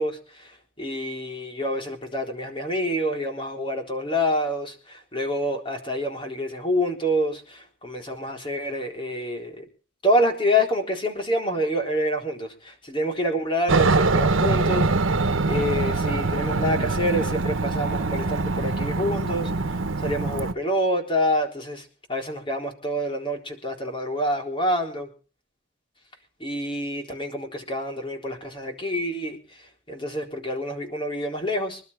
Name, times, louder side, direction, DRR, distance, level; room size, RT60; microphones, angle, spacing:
voice 1, 0.0-9.7 10.0-14.9 15.5-25.1 26.4-31.8, equal, 25° left, 3 dB, 3.9 m, -27 dB
Aircraft, 13.7-20.5, right 3 dB, 85° right, 1.1 m, -23 dB
26.0 x 12.0 x 3.5 m, 0.37 s
head